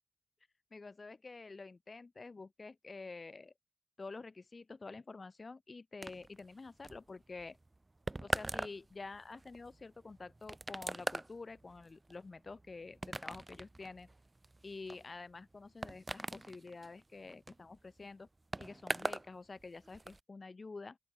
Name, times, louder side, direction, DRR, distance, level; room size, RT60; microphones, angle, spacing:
voice 1, 0.7-3.5 4.0-7.6 8.2-14.1 14.6-18.3 18.6-21.0, left 3 dB, 50° left, 3.7 m, -49 dB
sound 1, 6.0-19.3 19.6-20.2, right 2 dB, 30° right, 0.9 m, -42 dB
open air
cardioid pair, 60°, 0 cm